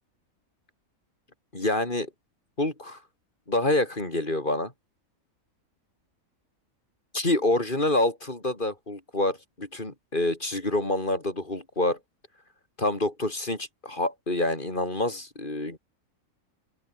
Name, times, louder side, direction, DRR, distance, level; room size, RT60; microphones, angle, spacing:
voice 1, 1.5-2.1 2.6-3.0 3.5-4.7 7.1-12.0 12.8-15.8, left 2 dB, 35° left, 4.1 m, -27 dB
open air
omnidirectional pair, 1.4 m